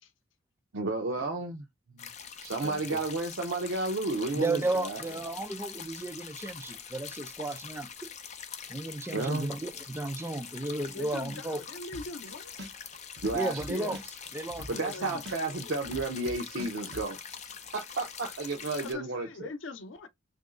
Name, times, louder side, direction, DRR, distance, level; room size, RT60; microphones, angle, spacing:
voice 1, 0.7-1.6 1.9-2.1 2.4-5.0 9.1-9.5 13.2-14.0 14.7-17.2 17.7-19.3, right 2 dB, 85° right, 0.6 m, -32 dB
sound 1, 2.0-18.9, left 7 dB, 40° left, 0.5 m, -44 dB
voice 2, 2.6-3.0 4.3-7.9 8.7-11.6 13.3-15.2, right 2 dB, 15° right, 0.5 m, -34 dB
voice 3, 10.9-12.6 14.7-16.0 18.8-20.1, left 3 dB, 85° left, 0.7 m, -43 dB
sound 2, 11.9-12.3 12.6-15.0 15.3-17.1, equal, 60° right, 0.9 m, -43 dB
3.1 x 2.6 x 3.7 m
head